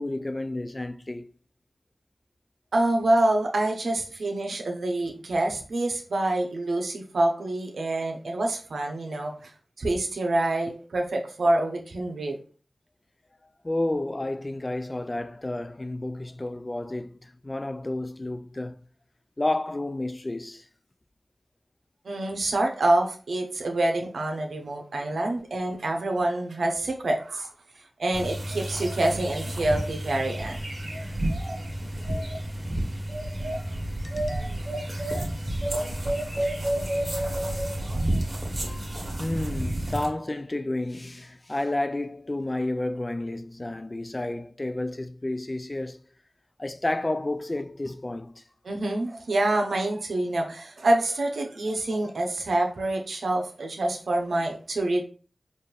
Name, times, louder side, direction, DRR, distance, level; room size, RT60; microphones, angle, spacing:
voice 1, 0.0-1.3 10.7-10.8 13.6-18.8 19.4-20.7 34.0-34.5 35.6-35.9 36.4-36.5 38.7-46.0 46.6-48.4, left 2 dB, 30° left, 0.3 m, -31 dB
voice 2, 2.7-9.5 9.8-12.4 22.0-27.5 28.0-30.6 48.6-55.0, right 1 dB, 85° right, 0.8 m, -26 dB
sound 1, 28.1-40.1, right 1 dB, 50° right, 1.6 m, -30 dB
4.3 x 2.6 x 3.3 m
cardioid pair, 45°, 0 cm